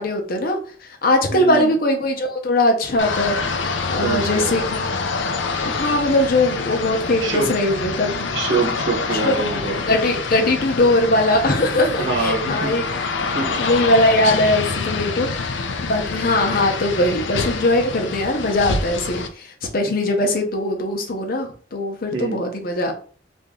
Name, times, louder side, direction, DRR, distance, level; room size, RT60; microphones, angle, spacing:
voice 1, 0.0-4.9 5.6-8.3 9.1-9.5 9.9-13.0 13.6-22.9, left 1 dB, 55° left, 3 dB, 0.7 m, -21 dB
voice 2, 1.3-1.7 3.9-4.6 7.2-7.5 8.3-9.8 12.0-12.7 13.3-13.5 22.1-22.4, right 3 dB, 85° right, 0 dB, 0.9 m, -25 dB
sound 1, 3.0-19.3, left 4 dB, 85° left, 0.4 m, -26 dB
2.8 x 2.6 x 3.6 m, 0.42 s
head